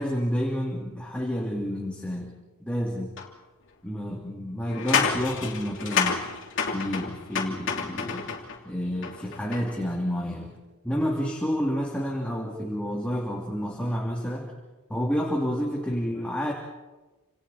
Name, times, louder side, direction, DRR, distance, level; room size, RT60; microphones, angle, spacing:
voice 1, 0.0-2.3 2.6-3.1 3.8-6.2 6.7-8.3 8.6-10.6 10.8-14.5 14.9-16.5, equal, 5° left, -2 dB, 2.9 m, -29 dB
sound 1, 3.2-3.3 4.7-8.6 9.0-9.8, left 6 dB, 60° left, 3.1 m, -29 dB
29.5 x 27.5 x 4.3 m, 1.2 s
head